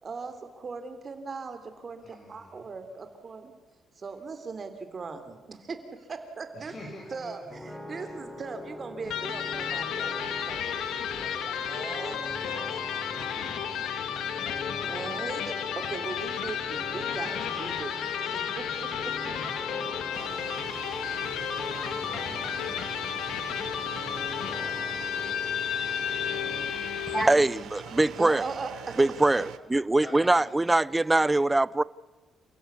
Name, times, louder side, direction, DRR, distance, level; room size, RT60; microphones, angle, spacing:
voice 1, 0.0-3.5 4.0-6.7 7.1-13.8 14.9-19.1 28.2-29.0, right 4 dB, 40° right, 3.5 m, -40 dB
voice 2, 2.0-2.7 6.5-7.6 7.9-8.5 11.5-15.4 16.0-16.5 17.3-21.3 22.1-23.4 24.6-25.1 27.2-28.4 29.4-29.5 30.0-30.7, left 1 dB, 40° left, 6.1 m, -51 dB
sound 1, 7.5-26.7, left 1 dB, 10° left, 3.1 m, -42 dB
Electric guitar, 9.0-27.4, left 8 dB, 85° left, 2.1 m, -32 dB
sound 2, 20.1-29.6, right 12 dB, 80° right, 0.9 m, -44 dB
voice 3, 27.1-28.4 29.0-31.8, right 2 dB, 15° right, 0.6 m, -23 dB
28.5 x 15.5 x 8.3 m
cardioid pair, 90°, 0 cm